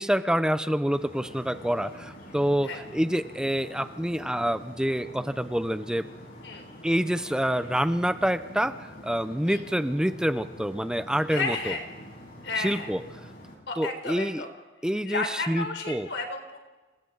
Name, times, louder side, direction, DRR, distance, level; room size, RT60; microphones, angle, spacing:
voice 1, 0.0-6.1 6.8-11.7 12.6-13.0 13.8-14.4 14.8-16.1, equal, 5° right, 11 dB, 0.6 m, -27 dB
sound 1, 0.8-13.6, equal, 55° left, 6.5 m, -46 dB
voice 2, 11.3-11.8 12.4-12.9 13.7-14.5 15.1-16.6, left 3 dB, 85° left, 4 dB, 3.9 m, -32 dB
29.5 x 28.0 x 4.0 m, 1.2 s
head